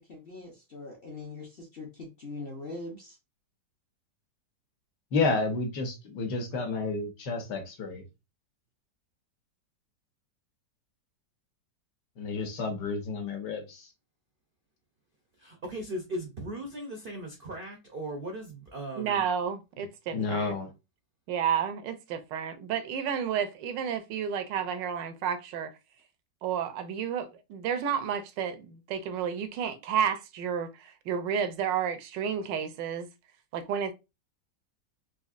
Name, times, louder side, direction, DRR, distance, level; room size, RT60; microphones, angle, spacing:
voice 1, 0.0-3.2, left 3 dB, 50° left, 0.6 m, -42 dB
voice 2, 5.1-8.0 12.2-13.9 20.1-20.7, left 3 dB, 75° left, 1.5 m, -30 dB
voice 3, 15.4-19.2, right 1 dB, 70° right, 0.5 m, -38 dB
voice 4, 19.0-20.5 21.3-25.7 26.4-33.1 33.5-33.9, right 8 dB, 85° right, 1.2 m, -31 dB
4.1 x 2.7 x 2.4 m
omnidirectional pair, 1.9 m